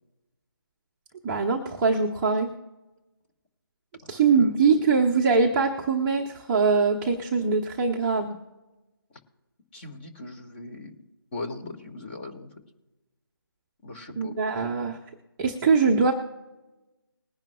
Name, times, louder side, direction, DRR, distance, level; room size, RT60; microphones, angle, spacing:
voice 1, 1.2-2.5 4.1-8.4 14.2-15.0 15.4-16.1, right 4 dB, 10° right, -3 dB, 0.8 m, -22 dB
voice 2, 4.1-4.5 9.7-10.9 11.3-12.5 13.8-14.3, left 2 dB, 25° left, 3 dB, 1.9 m, -39 dB
21.0 x 10.5 x 2.3 m, 1.1 s
figure-of-eight pair, 155°, 12 cm